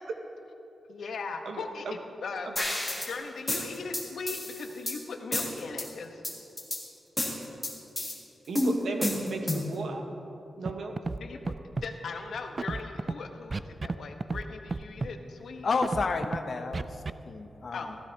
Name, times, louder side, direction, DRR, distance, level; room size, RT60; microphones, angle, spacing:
voice 1, 0.9-2.5 3.0-6.2 11.2-11.4 11.7-15.7 17.7-17.9, left 4 dB, 80° left, 4 dB, 1.0 m, -39 dB
voice 2, 1.4-2.0 2.5-2.6 8.5-10.0 10.6-10.9, right 3 dB, 80° right, 4 dB, 1.2 m, -35 dB
sound 1, 2.6-3.1 3.5-5.0 5.3-5.9 6.2-6.8 7.2-8.1 8.6-9.8, left 1 dB, 10° left, 2.0 m, -30 dB
Scratching (performance technique), 10.7-10.8 11.0-11.2 11.5-11.9 12.6-13.1 13.5-14.0 14.2-14.4 14.7-15.1 15.8-16.4 16.7-17.1, right 3 dB, 30° right, 0.3 m, -31 dB
voice 3, 15.6-18.0, left 4 dB, 50° left, 7 dB, 0.8 m, -31 dB
16.0 x 15.0 x 2.8 m, 2.9 s
wide cardioid pair, 135°, 0 cm